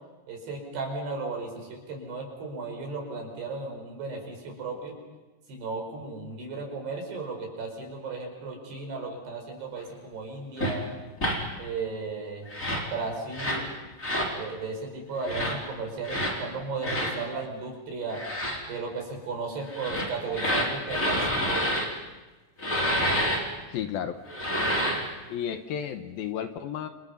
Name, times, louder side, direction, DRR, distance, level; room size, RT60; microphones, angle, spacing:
voice 1, 0.3-5.0 5.5-10.9 11.6-12.5 12.9-13.7 14.3-18.2 18.7-21.7, right 4 dB, 70° right, 2 dB, 7.3 m, -35 dB
sound 1, 10.6-10.7 11.2-11.4 12.5-12.9 13.3-13.6 14.0-14.3 15.2-15.5 16.0-16.4 16.8-17.1 18.1-18.6 19.7-21.9 22.6-23.4 24.3-25.1, equal, 20° left, 4.2 m, -28 dB
voice 2, 23.7-24.2 25.3-26.9, left 9 dB, 70° left, 7 dB, 2.6 m, -32 dB
30.0 x 27.5 x 5.6 m, 1.2 s
omnidirectional pair, 4.9 m